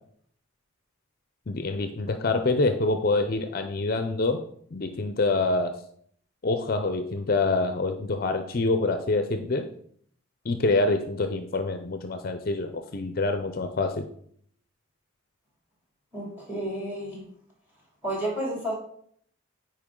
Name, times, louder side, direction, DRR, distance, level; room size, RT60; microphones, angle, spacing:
voice 1, 1.5-4.4 4.7-5.8 6.4-9.7 10.4-14.1, left 3 dB, 45° left, 7 dB, 0.5 m, -26 dB
voice 2, 16.1-17.2 18.0-18.7, right 1 dB, 10° right, -2 dB, 2.6 m, -31 dB
9.6 x 4.6 x 3.7 m, 0.62 s
head